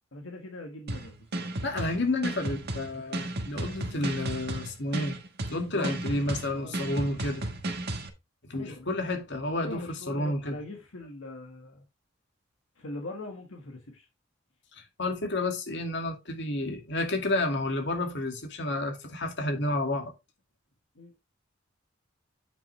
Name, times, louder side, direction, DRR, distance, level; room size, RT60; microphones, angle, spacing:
voice 1, 0.1-1.5 5.7-6.0 6.5-6.8 8.6-8.9 9.6-11.8 12.8-14.1 20.9-21.2, left 2 dB, 85° left, 1.6 m, -42 dB
sound 1, 0.9-8.1, right 1 dB, 55° right, 1.4 m, -34 dB
voice 2, 1.6-5.2 5.5-7.5 8.5-10.5 14.7-20.1, left 2 dB, 65° left, 2.2 m, -30 dB
9.2 x 5.7 x 3.2 m
head